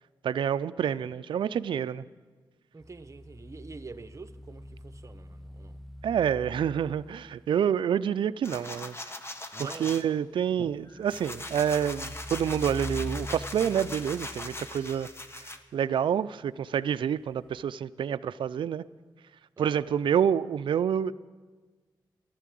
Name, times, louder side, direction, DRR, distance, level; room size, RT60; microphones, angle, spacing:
voice 1, 0.2-2.1 6.0-8.9 9.6-15.1 15.4-18.8 19.6-21.1, right 8 dB, 80° right, 0.4 m, -28 dB
voice 2, 2.7-5.8 9.5-9.9 19.6-19.9, right 3 dB, 35° right, 0.9 m, -46 dB
sound 1, 2.8-7.5 10.8-15.4 17.5-17.6, left 1 dB, ahead, 0.5 m, -43 dB
sound 2, 8.4-10.0 10.6-15.6, left 1 dB, 30° left, 1.4 m, -40 dB
14.5 x 12.0 x 7.6 m
cardioid pair, 55°, 8 cm